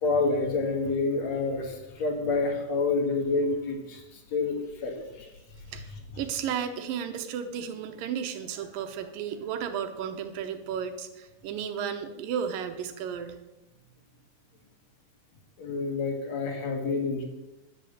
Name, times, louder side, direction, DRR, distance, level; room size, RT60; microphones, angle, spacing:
voice 1, 0.0-5.3 15.6-17.2, left 3 dB, 55° left, 3 dB, 2.7 m, -28 dB
voice 2, 6.2-13.4, right 8 dB, 85° right, 8 dB, 2.7 m, -33 dB
11.0 x 8.3 x 8.0 m, 0.99 s
omnidirectional pair, 3.9 m